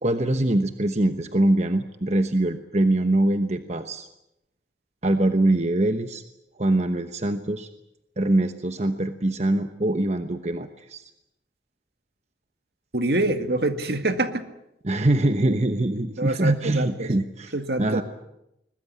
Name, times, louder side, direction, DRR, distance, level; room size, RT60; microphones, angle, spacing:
voice 1, 0.0-4.1 5.0-6.2 6.6-7.7 8.2-11.0 14.8-18.0, right 1 dB, 40° right, 8 dB, 1.1 m, -23 dB
voice 2, 12.9-14.5 16.2-17.1 17.5-18.0, right 2 dB, 65° right, 9 dB, 2.0 m, -25 dB
21.5 x 21.0 x 9.4 m, 0.83 s
head